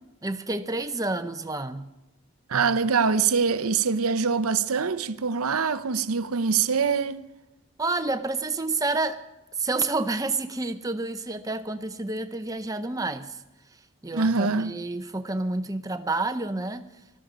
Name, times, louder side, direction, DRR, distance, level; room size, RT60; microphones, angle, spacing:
voice 1, 0.2-1.9 7.8-9.2 9.6-13.4 14.0-16.9, right 3 dB, 15° right, 0.7 m, -29 dB
voice 2, 2.5-7.2 14.1-14.7, right 5 dB, 75° right, 0.7 m, -24 dB
19.5 x 13.5 x 5.1 m
head